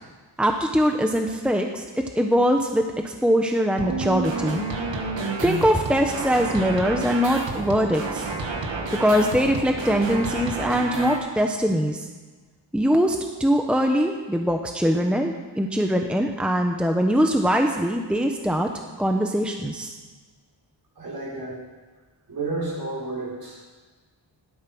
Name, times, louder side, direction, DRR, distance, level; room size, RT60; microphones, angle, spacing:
voice 1, 0.4-4.6 5.4-8.3 9.0-12.1 12.7-18.7 19.0-19.9, equal, ahead, 3 dB, 1.0 m, -22 dB
sound 1, 3.8-11.2, right 3 dB, 75° right, 2.1 m, -30 dB
voice 2, 21.0-21.6 22.3-23.6, right 2 dB, 50° right, -5 dB, 6.1 m, -31 dB
17.0 x 12.5 x 6.2 m, 1.4 s
wide cardioid pair, 135°, 45 cm